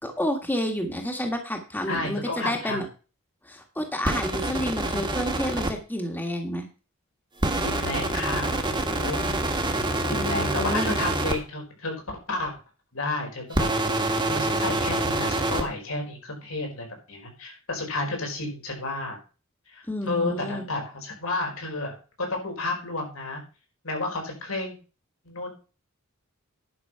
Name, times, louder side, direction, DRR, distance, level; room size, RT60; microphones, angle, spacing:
voice 1, 0.0-2.9 3.4-6.7 10.1-10.9 19.9-20.6, left 1 dB, 10° left, 4 dB, 1.5 m, -30 dB
voice 2, 1.9-2.8 7.6-9.2 10.1-11.9 12.3-12.5 12.9-13.7 14.2-19.2 19.7-23.4 23.8-24.8 25.2-25.5, left 2 dB, 85° left, 2 dB, 4.6 m, -31 dB
sound 1, 4.0-5.7 7.4-11.3 13.5-15.6, right 2 dB, 20° right, 1.5 m, -26 dB
11.0 x 6.0 x 5.5 m, 0.34 s
head